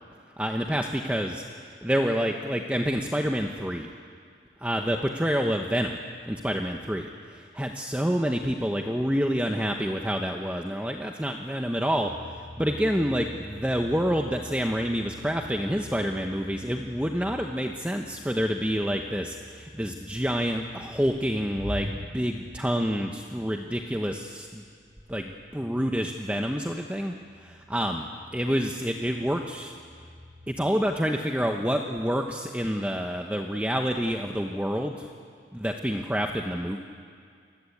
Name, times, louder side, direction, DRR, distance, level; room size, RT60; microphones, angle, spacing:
voice 1, 0.4-3.9 4.6-6.0 6.3-24.6 25.1-29.7 30.5-35.1 35.5-36.8, equal, 5° right, 2 dB, 1.0 m, -28 dB
sound 1, 12.1-30.7, equal, 40° right, 3.1 m, -46 dB
29.0 x 22.5 x 8.7 m, 2.2 s
head